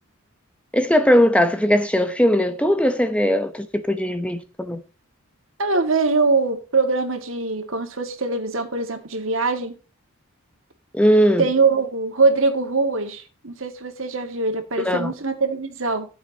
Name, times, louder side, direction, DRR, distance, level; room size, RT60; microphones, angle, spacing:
voice 1, 0.7-4.8 10.9-11.5 14.8-15.1, equal, 5° left, 0.8 m, -19 dB
voice 2, 5.6-9.7 11.4-16.1, right 3 dB, 65° right, 2.1 m, -22 dB
13.5 x 7.2 x 2.8 m
head